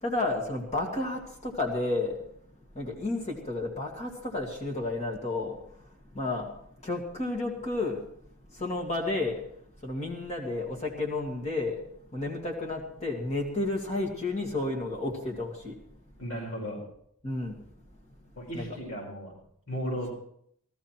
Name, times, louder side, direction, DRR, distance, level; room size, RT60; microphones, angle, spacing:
voice 1, 0.0-2.2 2.7-6.5 6.8-8.1 8.5-9.4 9.8-11.8 12.1-15.8 17.2-17.6 18.5-18.6, left 2 dB, 30° left, 0 dB, 2.4 m, -31 dB
voice 2, 16.2-16.8 18.3-19.3 19.7-20.1, equal, 65° left, -3 dB, 5.0 m, -35 dB
17.0 x 14.0 x 4.5 m, 0.66 s
head